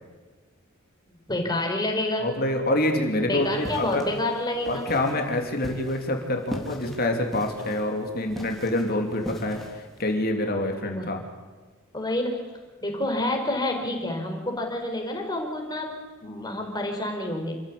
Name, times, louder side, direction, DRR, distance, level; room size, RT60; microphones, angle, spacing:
voice 1, 1.3-2.3 3.2-4.8 10.8-11.1 11.9-12.4 12.8-15.9 16.2-17.5, left 1 dB, 20° left, 2 dB, 4.5 m, -28 dB
voice 2, 2.2-4.0 4.7-11.2, left 1 dB, 45° left, 3 dB, 3.0 m, -26 dB
sound 1, 3.4-10.1, equal, ahead, 3.4 m, -40 dB
27.5 x 15.0 x 8.6 m, 1.4 s
head